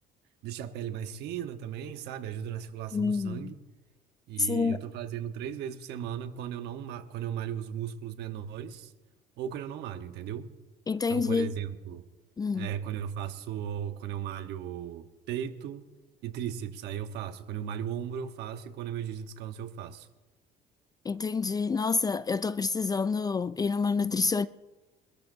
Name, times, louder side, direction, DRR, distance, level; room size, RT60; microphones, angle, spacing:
voice 1, 0.4-3.6 4.3-8.9 9.4-10.5 11.1-12.0 12.5-15.9 16.2-20.1, right 9 dB, 85° right, 1.1 m, -36 dB
voice 2, 2.9-3.5 4.4-4.8 10.9-11.5 12.4-12.7 21.1-24.5, left 4 dB, 20° left, 0.4 m, -28 dB
24.0 x 13.5 x 2.7 m
cardioid pair, 110°, 17 cm